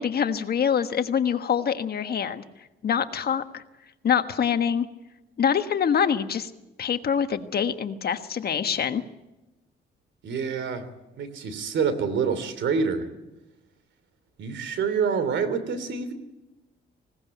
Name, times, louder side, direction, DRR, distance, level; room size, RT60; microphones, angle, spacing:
voice 1, 0.0-2.4 2.8-3.6 4.0-4.9 5.4-6.5 6.8-9.0, left 7 dB, 50° left, 8 dB, 1.4 m, -25 dB
voice 2, 10.2-10.9 11.2-13.1 14.4-16.1, right 5 dB, 70° right, 12 dB, 2.9 m, -27 dB
20.0 x 17.5 x 9.3 m, 1.0 s
cardioid pair, 90°, 20 cm